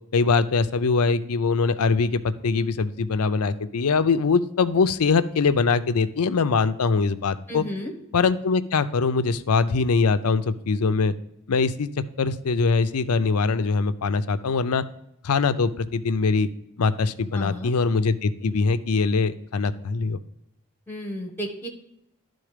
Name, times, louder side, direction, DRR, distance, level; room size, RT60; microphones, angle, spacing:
voice 1, 0.1-7.6 8.1-11.1 11.5-11.9 12.2-14.8 15.2-16.5 16.8-20.2, left 4 dB, 90° left, 12 dB, 0.5 m, -22 dB
voice 2, 7.5-7.9 17.3-17.7 20.9-21.7, equal, 10° left, 2 dB, 1.2 m, -33 dB
11.5 x 3.9 x 5.0 m, 0.82 s
head